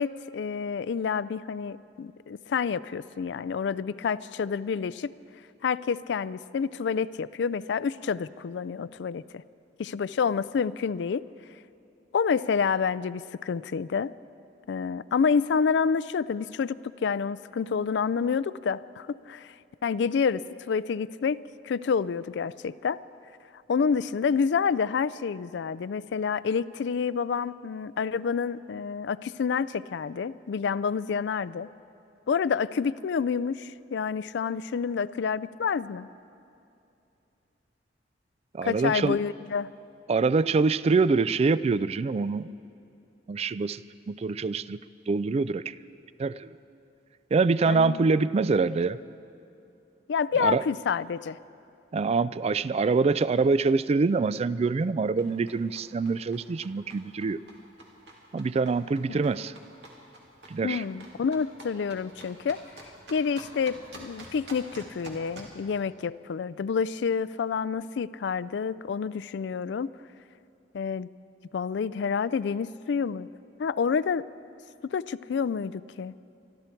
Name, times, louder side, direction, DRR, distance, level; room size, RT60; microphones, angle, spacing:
voice 1, 0.0-5.1 5.6-9.4 9.8-11.3 12.1-14.1 14.7-19.5 19.8-23.0 23.7-31.7 32.3-36.1 38.6-39.7 47.7-48.0 50.1-51.4 59.1-59.2 60.6-62.6 63.1-69.9 70.7-71.1 71.5-73.3 73.6-74.3 74.9-76.1, left 6 dB, 70° left, 18 dB, 0.4 m, -28 dB
voice 2, 38.5-39.2 40.1-42.5 43.3-43.8 44.1-44.8 45.1-45.7 46.2-46.6 47.3-49.0 50.4-50.6 51.9-57.4 58.3-59.5 60.5-60.8, right 4 dB, 35° right, 17 dB, 0.3 m, -25 dB
sound 1, 55.2-65.6, right 1 dB, 70° right, 2.4 m, -49 dB
25.0 x 12.5 x 4.5 m, 2.7 s
head